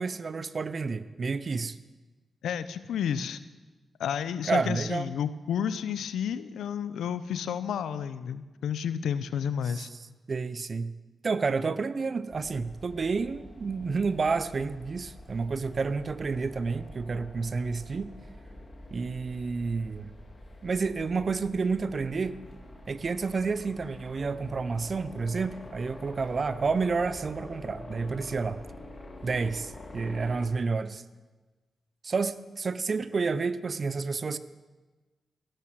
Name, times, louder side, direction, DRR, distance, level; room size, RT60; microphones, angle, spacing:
voice 1, 0.0-1.8 4.5-5.1 9.7-9.9 10.3-10.9 11.2-18.1 18.9-20.1 20.6-22.4 22.9-28.6 29.2-31.0 32.0-34.4, right 4 dB, 50° right, 14 dB, 0.8 m, -30 dB
voice 2, 2.4-3.4 4.0-9.9, left 8 dB, 85° left, 14 dB, 0.7 m, -31 dB
sound 1, 12.3-30.4, left 1 dB, 30° left, 3.1 m, -46 dB
15.0 x 12.0 x 6.4 m, 1.3 s
supercardioid pair, 50°, 0 cm